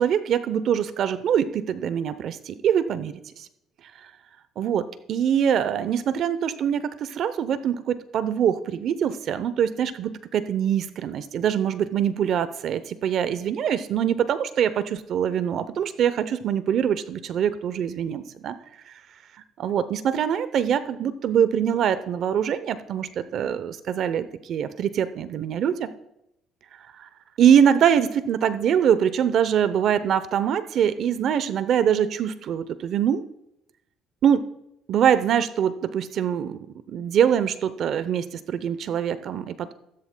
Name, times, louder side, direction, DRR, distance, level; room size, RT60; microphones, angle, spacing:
voice 1, 0.0-3.5 4.6-18.5 19.6-25.9 27.0-27.1 27.4-33.2 34.2-34.5 34.9-36.6 36.9-39.7, right 8 dB, 60° right, 14 dB, 0.7 m, -23 dB
14.0 x 13.5 x 2.2 m, 0.83 s
cardioid pair, 100°, 0 cm